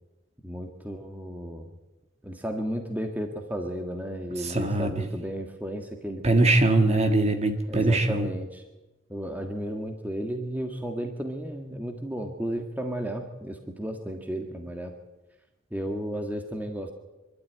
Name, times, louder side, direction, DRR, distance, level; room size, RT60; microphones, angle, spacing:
voice 1, 0.4-1.7 2.2-6.5 7.7-8.6 9.1-14.9 15.7-16.9, equal, 10° right, 4 dB, 1.6 m, -33 dB
voice 2, 4.4-4.9 6.2-8.3, right 2 dB, 30° right, 6 dB, 1.9 m, -22 dB
24.5 x 12.5 x 9.3 m, 1.1 s
head